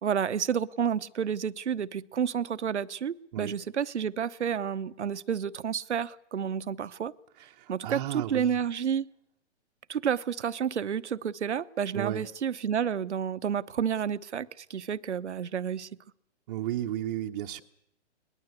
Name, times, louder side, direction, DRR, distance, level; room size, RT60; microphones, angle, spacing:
voice 1, 0.0-7.1 7.7-9.1 9.9-15.9, right 8 dB, 75° right, 1.0 m, -30 dB
voice 2, 7.6-8.6 11.9-12.3 16.5-17.6, right 12 dB, 35° right, 1.1 m, -33 dB
22.0 x 20.5 x 8.2 m
hypercardioid pair, 130°, 35 cm